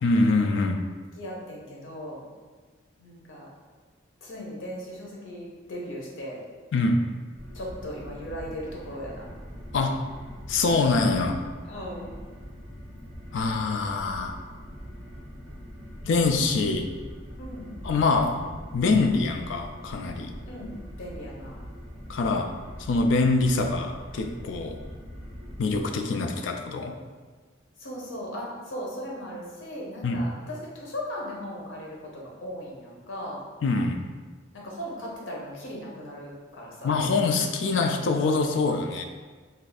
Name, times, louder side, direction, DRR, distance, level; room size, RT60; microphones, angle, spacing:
voice 1, 0.0-0.8 6.7-7.1 9.7-10.1 10.5-11.4 13.3-14.4 16.0-16.9 17.8-18.4 18.7-20.3 22.1-22.5 22.8-24.8 25.6-26.9 30.0-30.3 33.6-34.0 36.8-39.0, left 3 dB, 70° left, 4 dB, 0.3 m, -24 dB
voice 2, 1.2-2.2 3.0-3.5 4.2-6.4 7.5-9.3 11.7-12.1 17.4-17.8 20.5-21.6 27.8-33.4 34.5-37.0, equal, 90° left, -3 dB, 0.8 m, -38 dB
sound 1, 7.3-25.8, equal, 45° right, 0.9 m, -42 dB
2.6 x 2.4 x 4.0 m, 1.4 s
head